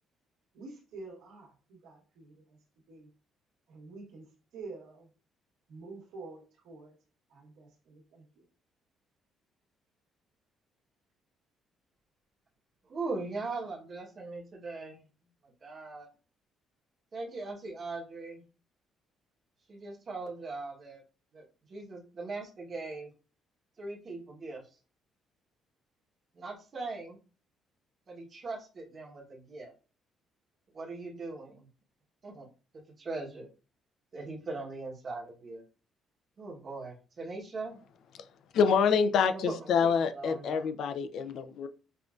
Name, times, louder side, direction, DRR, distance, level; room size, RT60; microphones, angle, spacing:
voice 1, 0.5-2.6 2.9-3.1 3.7-4.3 4.5-5.1 5.7-6.9 7.3-8.4, right 3 dB, 80° right, 0 dB, 1.4 m, -48 dB
voice 2, 12.8-15.0 15.4-16.1 17.1-18.4 19.7-21.0 21.3-23.1 23.8-24.6 26.3-27.2 28.1-29.7 30.7-31.7 32.2-32.5 33.0-33.5 34.1-35.6 36.4-37.8 39.3-40.7 41.2-41.3, right 3 dB, 30° right, -1 dB, 1.0 m, -40 dB
voice 3, 38.5-41.7, left 6 dB, 55° left, 10 dB, 0.4 m, -26 dB
5.5 x 2.5 x 2.4 m, 0.35 s
cardioid pair, 170°, 0 cm